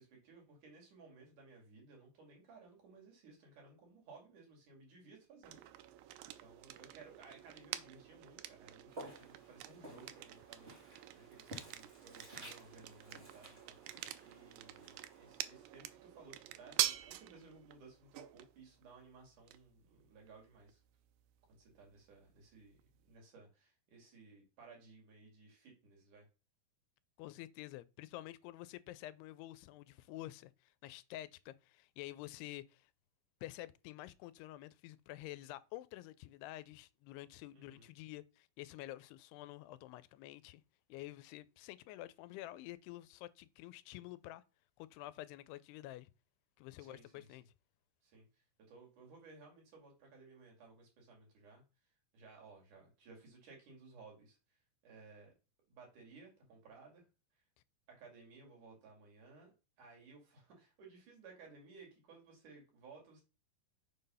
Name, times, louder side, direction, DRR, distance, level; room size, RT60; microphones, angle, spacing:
voice 1, 0.0-5.6 5.9-13.8 14.2-20.8 21.5-26.3 37.5-37.9 46.8-47.4 48.0-51.6 52.1-54.6 54.8-55.3 55.7-57.0 57.9-63.2, right 4 dB, 55° right, 3.6 m, -59 dB
sound 1, 5.4-23.2, right 14 dB, 85° right, 2.0 m, -46 dB
Walk footsteps, 8.9-16.0, right 1 dB, 25° right, 1.3 m, -55 dB
voice 2, 27.2-32.9 33.4-40.6 40.9-44.4 44.8-46.1 46.6-47.4, left 16 dB, 90° left, 2.6 m, -49 dB
6.7 x 3.9 x 5.4 m
omnidirectional pair, 4.6 m